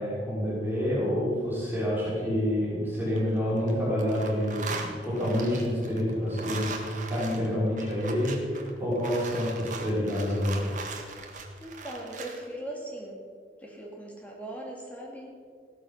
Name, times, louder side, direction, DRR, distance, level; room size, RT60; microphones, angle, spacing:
voice 1, 0.0-4.7 5.0-6.7 7.1-10.7, equal, 10° right, -8 dB, 5.3 m, -28 dB
sound 1, 2.9-3.7 4.0-12.4, right 4 dB, 45° right, 1.8 m, -40 dB
voice 2, 11.6-13.2 13.6-15.3, right 1 dB, 10° left, -2 dB, 2.5 m, -39 dB
16.0 x 13.0 x 5.7 m, 2.1 s
head